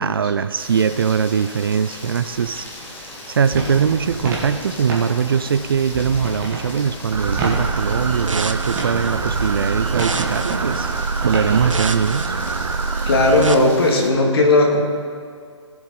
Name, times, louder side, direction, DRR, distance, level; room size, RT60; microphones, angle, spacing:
voice 1, 0.0-10.9 11.2-12.4, right 7 dB, 45° right, 12 dB, 0.4 m, -21 dB
Rain, 0.6-14.1, left 1 dB, 10° left, 1.1 m, -38 dB
sound 1, 3.5-11.8, right 2 dB, 15° right, 1.7 m, -30 dB
sound 2, 7.1-13.5, right 4 dB, 75° right, 0.8 m, -24 dB
voice 2, 13.1-14.8, left 2 dB, 50° left, 0 dB, 2.3 m, -16 dB
19.5 x 7.1 x 3.9 m, 2.2 s
figure-of-eight pair, 140°, 17 cm